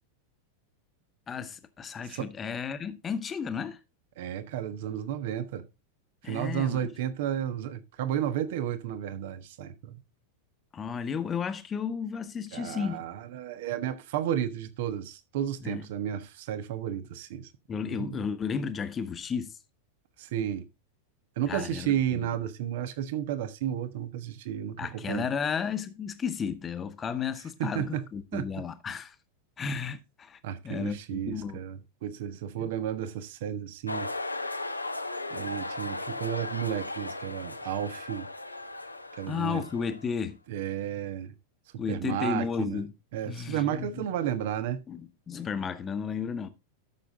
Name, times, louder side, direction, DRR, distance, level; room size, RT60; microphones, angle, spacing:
voice 1, 1.3-3.8 6.2-6.9 10.7-13.0 15.6-15.9 17.7-19.5 21.5-22.2 24.8-29.1 29.6-30.4 30.6-31.6 32.6-32.7 39.3-40.4 41.8-42.9 43.2-44.1 44.9-46.5, left 6 dB, 20° left, 1.2 m, -33 dB
voice 2, 4.2-5.6 6.2-10.0 12.5-17.5 17.8-18.2 20.2-20.6 21.4-25.3 27.6-28.0 28.3-28.5 30.4-34.1 35.3-38.3 39.2-39.6 40.5-41.3 41.7-42.8 43.1-44.8, right 10 dB, 55° right, 1.3 m, -32 dB
sound 1, 33.9-40.2, left 2 dB, 85° left, 0.9 m, -36 dB
13.0 x 6.6 x 3.7 m
figure-of-eight pair, 90°, 0 cm